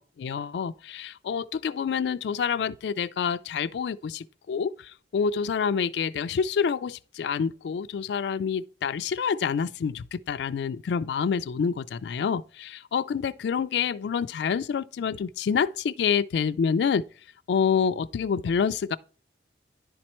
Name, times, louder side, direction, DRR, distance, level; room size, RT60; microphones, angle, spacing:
voice 1, 0.2-17.0 17.5-19.0, left 6 dB, 70° left, 0.3 m, -27 dB
10.5 x 4.3 x 3.0 m
head